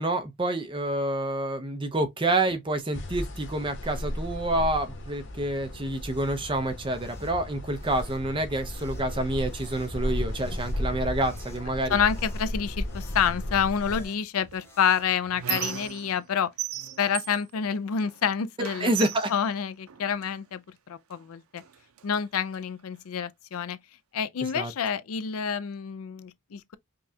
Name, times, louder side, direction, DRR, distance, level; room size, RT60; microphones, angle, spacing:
voice 1, 0.0-12.0 18.6-19.3 24.5-24.7, right 1 dB, 25° right, 0.6 m, -28 dB
sound 1, 2.9-14.0, left 1 dB, 60° left, 0.9 m, -35 dB
sound 2, 5.8-15.9, equal, 10° left, 0.7 m, -48 dB
voice 2, 11.9-16.5 17.0-18.9 19.3-21.6 22.0-23.8 24.1-26.8, left 7 dB, 85° left, 0.4 m, -28 dB
Squeak, 14.5-16.3 16.6-18.2 18.6-20.3 21.1-21.2 21.6-22.6, right 10 dB, 80° right, 0.5 m, -37 dB
5.2 x 2.3 x 2.7 m
head